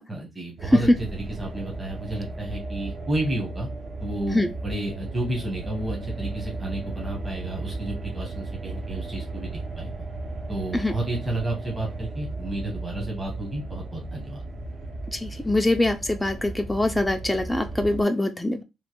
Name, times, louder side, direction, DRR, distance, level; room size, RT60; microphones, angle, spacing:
voice 1, 0.1-3.7 4.0-9.9 10.5-14.4, right 1 dB, 20° right, -1 dB, 1.0 m, -31 dB
sound 1, 0.6-18.0, right 2 dB, 50° right, 0.7 m, -35 dB
voice 2, 15.1-18.6, left 1 dB, 5° left, 4 dB, 0.3 m, -23 dB
3.1 x 2.2 x 2.9 m, 0.25 s
cardioid pair, 90°, 0 cm